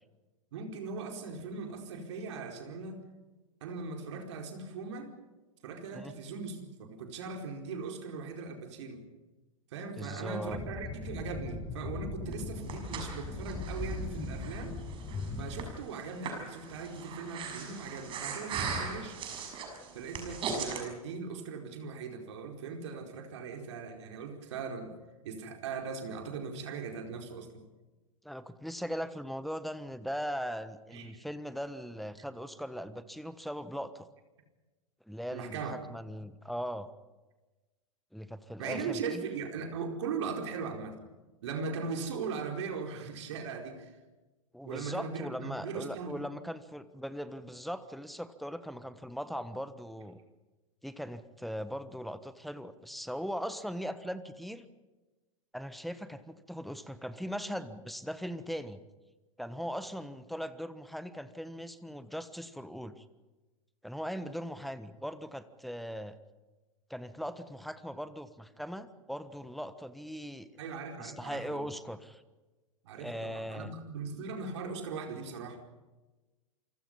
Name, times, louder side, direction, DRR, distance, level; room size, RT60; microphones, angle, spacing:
voice 1, 0.5-3.0 3.6-5.1 5.6-9.1 9.7-14.8 15.4-19.2 19.9-25.0 25.2-27.6 30.9-31.2 35.3-35.7 38.6-41.0 41.4-43.9 44.6-46.2 70.6-71.7 72.8-75.6, right 4 dB, 55° right, 3 dB, 4.8 m, -39 dB
voice 2, 10.0-10.6 28.2-34.1 35.1-36.9 38.1-39.2 44.5-50.2 50.8-54.7 55.5-58.8 59.4-63.0 63.8-66.1 66.9-70.5 71.0-72.2 73.0-73.7, equal, ahead, 13 dB, 1.3 m, -39 dB
sound 1, 10.5-15.7, left 3 dB, 20° left, 5.3 m, -39 dB
Breathing, 12.3-20.8, right 5 dB, 30° right, 6.3 m, -39 dB
28.5 x 25.5 x 5.5 m, 1.2 s
figure-of-eight pair, 95°, 18 cm